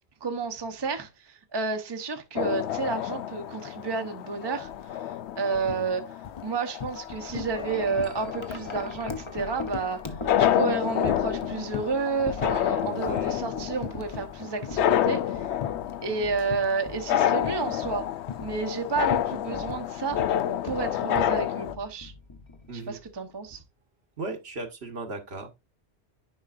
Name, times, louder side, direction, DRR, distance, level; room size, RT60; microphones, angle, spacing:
voice 1, 0.2-6.0 6.4-15.4 16.0-18.1 18.4-20.2 20.6-22.1 22.7-23.6, right 4 dB, 25° right, 0.8 m, -31 dB
sound 1, 2.4-21.7, left 11 dB, 80° left, 0.9 m, -29 dB
sound 2, 4.7-4.8 5.1-5.9 6.2-7.1 7.3-7.7 8.0-10.8 11.1-12.0 12.4-12.8 13.2-13.3 13.8-14.3 14.6-16.0 16.5-16.9 17.4-17.9 18.2-21.5, left 8 dB, 45° left, 0.6 m, -39 dB
Wind chime, 7.0-23.1, left 3 dB, 30° left, 1.0 m, -42 dB
voice 2, 12.8-13.4 22.7-23.0 24.2-25.6, right 3 dB, 70° right, 1.5 m, -37 dB
10.0 x 5.2 x 2.5 m
omnidirectional pair, 1.1 m